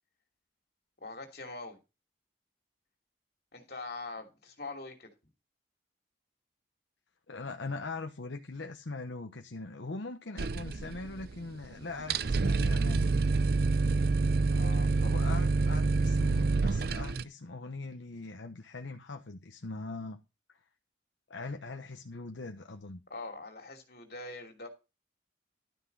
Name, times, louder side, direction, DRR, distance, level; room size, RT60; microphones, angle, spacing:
voice 1, 1.0-1.8 3.5-5.1 14.5-15.4 23.1-24.7, left 3 dB, 55° left, 2.8 m, -43 dB
voice 2, 7.3-13.1 15.0-20.2 20.5-20.6 21.3-23.0, left 3 dB, 80° left, 0.9 m, -41 dB
sound 1, 10.4-11.4 11.6-11.7 12.0-17.2, right 3 dB, 55° right, 0.5 m, -27 dB
12.0 x 5.9 x 5.4 m
head